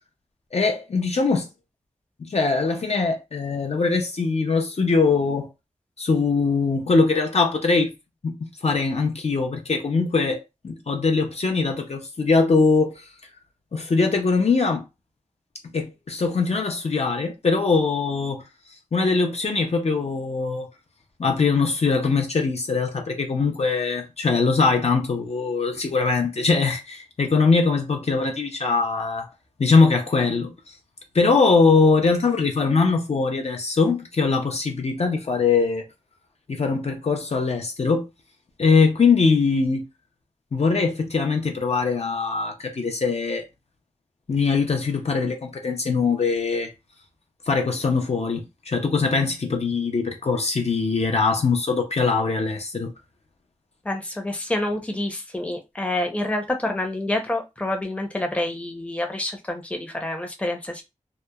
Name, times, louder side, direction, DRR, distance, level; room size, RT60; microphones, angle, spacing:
voice 1, 0.5-1.5 2.2-5.5 6.0-7.9 8.2-8.4 8.6-13.0 13.7-14.8 15.7-18.4 18.9-20.7 21.2-29.2 29.6-30.5 31.1-35.8 36.5-38.1 38.6-39.9 40.5-43.4 44.3-46.7 47.5-52.9, left 4 dB, 55° left, 0.5 m, -22 dB
voice 2, 53.8-60.8, left 1 dB, 10° left, 0.6 m, -27 dB
2.8 x 2.1 x 2.2 m
wide cardioid pair, 60°, 13 cm